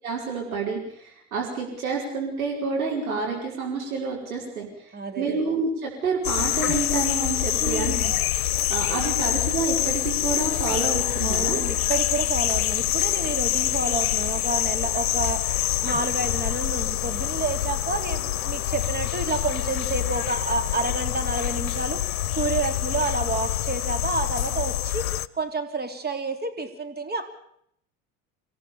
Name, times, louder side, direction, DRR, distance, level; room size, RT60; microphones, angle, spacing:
voice 1, 0.0-8.2 8.7-11.6, right 4 dB, 90° right, -1 dB, 5.2 m, -29 dB
voice 2, 4.9-5.4 7.6-8.2 11.2-15.4 15.8-27.3, right 3 dB, 25° right, 7 dB, 3.6 m, -29 dB
sound 1, 6.2-25.3, left 13 dB, 85° left, 0.8 m, -26 dB
26.0 x 17.0 x 7.2 m, 0.70 s
hypercardioid pair, 70°, 41 cm